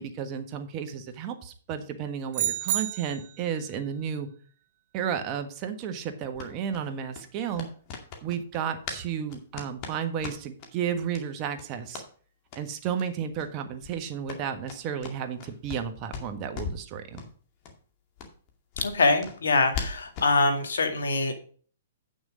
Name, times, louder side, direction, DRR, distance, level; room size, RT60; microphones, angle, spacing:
voice 1, 0.0-4.3 4.9-7.7 8.2-12.0 12.5-17.2, right 8 dB, 35° right, 7 dB, 1.4 m, -33 dB
sound 1, 2.3-3.4, right 13 dB, 50° right, 0.5 m, -29 dB
sound 2, 6.3-9.0 9.3-10.7 11.1-11.2 11.5-12.1 12.5-12.6 13.0-13.1 13.3-13.5 13.8-15.9 16.1-16.9 17.2-17.3 17.6-17.7 18.2-20.3, left 5 dB, 35° left, 2.3 m, -39 dB
voice 2, 18.8-21.3, left 3 dB, 85° left, 6 dB, 2.1 m, -24 dB
9.2 x 6.2 x 5.0 m, 0.43 s
hypercardioid pair, 140°, 0 cm